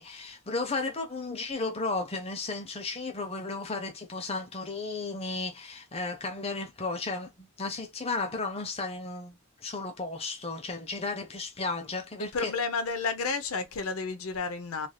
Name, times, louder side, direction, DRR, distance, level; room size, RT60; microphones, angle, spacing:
voice 1, 0.0-12.5, left 3 dB, 25° left, 0.7 m, -34 dB
voice 2, 12.2-14.9, left 4 dB, 75° left, 0.7 m, -31 dB
3.3 x 2.6 x 2.2 m
head